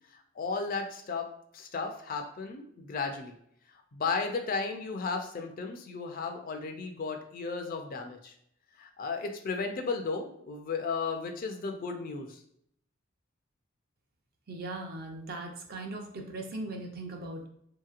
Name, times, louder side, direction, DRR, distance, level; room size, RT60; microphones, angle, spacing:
voice 1, 0.1-1.3 1.5-3.3 3.9-8.3 8.8-12.4, left 4 dB, 45° left, 5 dB, 0.4 m, -34 dB
voice 2, 14.5-17.5, right 2 dB, 45° right, 2 dB, 0.5 m, -39 dB
3.1 x 2.8 x 2.4 m, 0.71 s
head